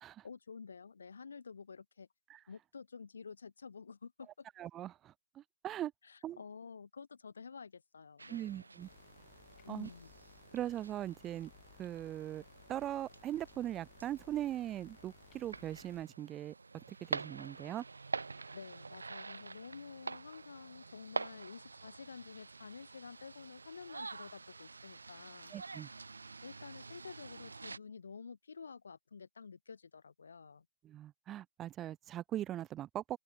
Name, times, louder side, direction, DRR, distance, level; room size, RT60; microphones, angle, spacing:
voice 1, 0.2-2.1 2.5-4.4 6.0-8.7 9.6-10.1 18.5-25.5 26.4-30.6, left 5 dB, 60° left, 2.9 m, -50 dB
voice 2, 4.6-5.9 6.2-6.4 8.3-8.9 9.7-9.9 10.5-11.5 11.8-12.4 12.7-16.5 16.9-17.8 25.5-25.9 30.8-33.2, right 12 dB, 15° right, 0.7 m, -40 dB
sound 1, 8.2-27.8, right 4 dB, 70° right, 0.3 m, -47 dB
sound 2, 8.8-16.0, left 35 dB, 25° left, 7.2 m, -63 dB
open air
figure-of-eight pair, 135°, 0 cm